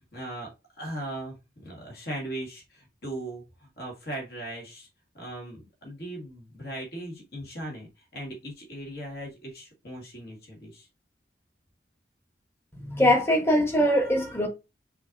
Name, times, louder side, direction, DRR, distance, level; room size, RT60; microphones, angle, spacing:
voice 1, 0.1-0.5 0.8-4.9 5.1-10.9, right 1 dB, 55° left, 1.8 m, -38 dB
voice 2, 12.8-14.5, equal, 15° left, 1.0 m, -22 dB
5.4 x 2.9 x 2.5 m
head